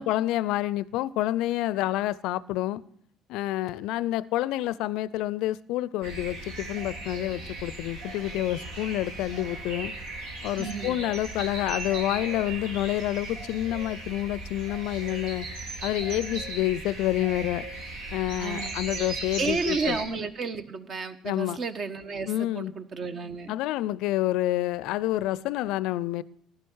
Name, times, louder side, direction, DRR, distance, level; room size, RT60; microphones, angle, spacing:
voice 1, 0.0-2.8 3.3-9.9 10.4-15.5 15.8-17.7 18.1-20.0 21.2-21.6 22.3-22.7 23.5-26.2, left 15 dB, 70° left, 21 dB, 0.5 m, -28 dB
sound 1, 6.0-20.0, right 2 dB, 80° right, 2.9 m, -37 dB
voice 2, 10.6-11.0 18.4-18.7 19.4-23.5, right 4 dB, 50° right, 9 dB, 1.3 m, -32 dB
15.5 x 11.0 x 6.4 m, 0.67 s
hypercardioid pair, 60°, 0 cm